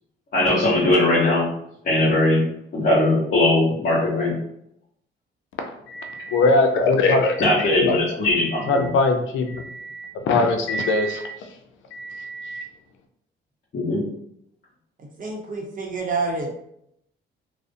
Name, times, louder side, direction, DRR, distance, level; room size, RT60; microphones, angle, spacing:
voice 1, 0.3-1.5 1.8-2.4 2.7-4.3 7.4-8.9 13.7-14.0, left 2 dB, 50° left, -6 dB, 0.8 m, -19 dB
voice 2, 5.9-7.9 8.7-11.3 11.9-12.6, left 3 dB, 75° left, 5 dB, 0.5 m, -22 dB
voice 3, 15.2-16.5, right 3 dB, 45° right, 0 dB, 0.7 m, -27 dB
2.4 x 2.0 x 2.5 m, 0.76 s
cardioid pair, 90°, 20 cm